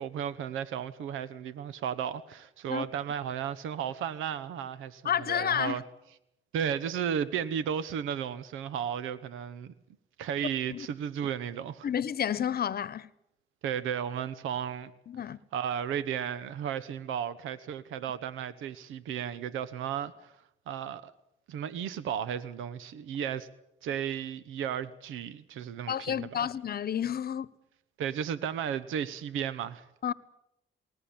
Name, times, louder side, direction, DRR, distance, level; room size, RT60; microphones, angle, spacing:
voice 1, 0.0-5.0 5.3-5.8 6.5-9.7 10.2-11.9 13.6-14.9 15.5-20.3 20.7-21.1 21.5-23.5 23.8-26.5 28.0-29.9, right 8 dB, 85° right, 1.0 m, -34 dB
voice 2, 5.0-5.8 10.7-10.9 11.8-13.1 15.1-15.4 25.9-27.5 30.0-30.1, left 9 dB, 50° left, 1.1 m, -30 dB
20.0 x 20.0 x 8.8 m
cardioid pair, 90°, 20 cm